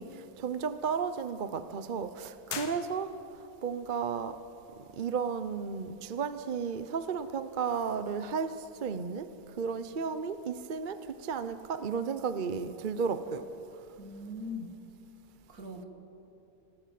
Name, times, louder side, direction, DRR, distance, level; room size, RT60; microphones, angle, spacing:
voice 1, 0.0-3.2 3.6-4.4 5.0-9.3 9.6-13.5, right 6 dB, 45° right, 11 dB, 0.7 m, -33 dB
sound 1, 2.5-3.5, left 7 dB, 70° left, 1.8 m, -41 dB
voice 2, 14.0-14.7 15.5-15.8, left 2 dB, 60° right, 4 dB, 2.7 m, -40 dB
28.0 x 18.0 x 7.6 m, 2.9 s
omnidirectional pair, 1.8 m